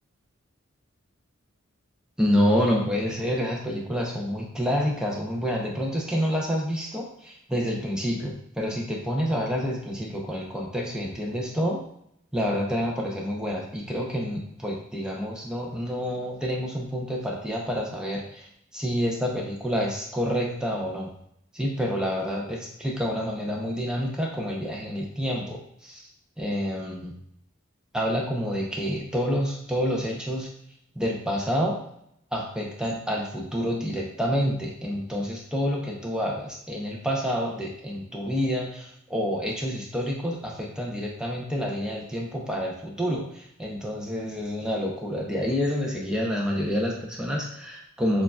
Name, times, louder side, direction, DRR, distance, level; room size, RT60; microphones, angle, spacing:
voice 1, 2.2-11.8 12.3-18.5 18.7-21.2 21.5-26.0 26.4-27.2 27.9-30.5 30.9-31.8 32.3-48.2, equal, 5° right, -2 dB, 0.6 m, -28 dB
6.3 x 2.5 x 2.2 m, 0.71 s
head